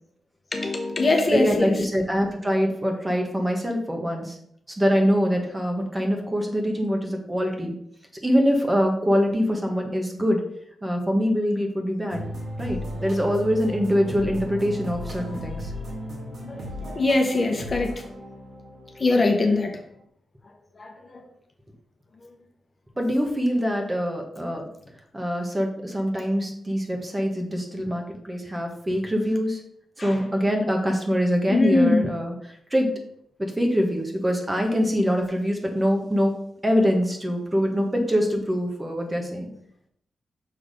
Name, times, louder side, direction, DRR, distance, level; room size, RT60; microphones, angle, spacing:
voice 1, 0.5-1.8 16.4-16.6 16.8-17.9 19.0-19.8 20.8-21.2 30.0-30.2 31.5-32.1, left 2 dB, 40° left, 4 dB, 1.1 m, -22 dB
voice 2, 1.3-4.4 4.7-7.7 8.2-10.4 10.8-12.3 12.6-15.7 19.4-19.6 23.0-24.7 25.1-29.6 30.0-32.9 33.4-36.3 36.6-39.5, equal, 20° right, 2 dB, 1.3 m, -24 dB
sound 1, 12.1-19.9, equal, 70° right, 1.9 m, -35 dB
6.5 x 3.5 x 5.2 m, 0.70 s
cardioid pair, 90°, 0 cm